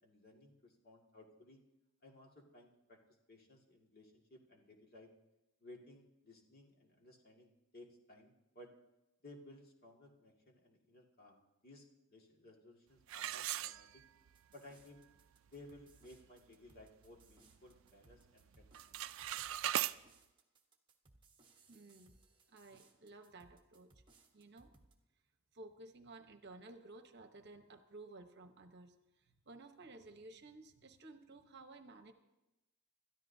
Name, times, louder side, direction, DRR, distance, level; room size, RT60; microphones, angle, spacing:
voice 1, 0.0-1.6 2.0-3.0 3.3-5.1 5.6-8.7 9.2-14.0 14.5-15.0 15.5-19.0, left 1 dB, 45° left, 0 dB, 2.1 m, -59 dB
sound 1, 13.1-14.4 14.8-14.9 15.5-15.6 16.0-16.3 16.7-17.8 18.1-18.4 18.7-20.0, right 13 dB, 65° right, 0.4 m, -39 dB
sound 2, 14.3-24.9, right 3 dB, 20° right, 1.1 m, -68 dB
voice 2, 21.7-22.1 22.5-23.9 24.3-24.7 25.5-28.9 29.2-32.1, right 2 dB, 50° right, 7 dB, 1.0 m, -55 dB
26.5 x 13.5 x 2.7 m, 0.97 s
head